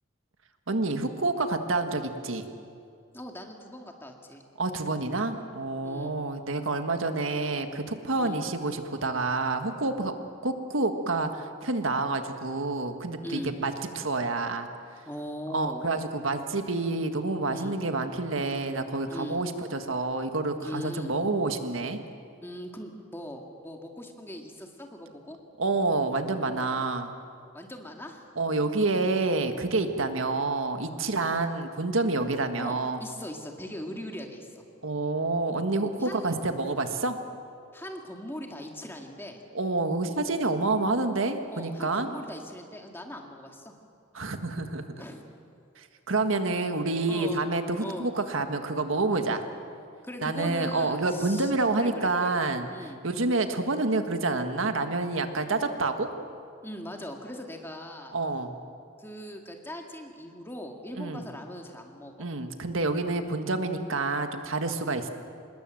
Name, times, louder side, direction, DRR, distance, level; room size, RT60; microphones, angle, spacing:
voice 1, 0.7-2.4 4.6-10.1 10.4-14.7 15.5-22.0 25.6-27.1 28.4-33.0 34.8-37.2 39.5-42.1 44.1-44.8 45.8-49.4 50.2-52.7 53.0-56.1 58.1-58.5 61.0-61.2 62.2-65.1, right 3 dB, 85° right, 7 dB, 1.6 m, -28 dB
voice 2, 3.1-4.4 5.8-6.1 8.2-8.5 13.2-13.5 15.1-15.8 17.5-17.8 19.1-19.4 20.6-21.1 22.4-25.4 27.5-28.3 29.8-29.9 31.0-31.3 32.6-34.6 36.0-36.4 37.7-39.4 41.5-43.7 45.0-45.2 47.1-47.5 47.8-48.1 50.0-52.3 52.7-53.0 56.6-58.1 59.0-62.3, equal, 10° left, 2 dB, 2.1 m, -40 dB
26.0 x 20.5 x 7.7 m, 2.4 s
head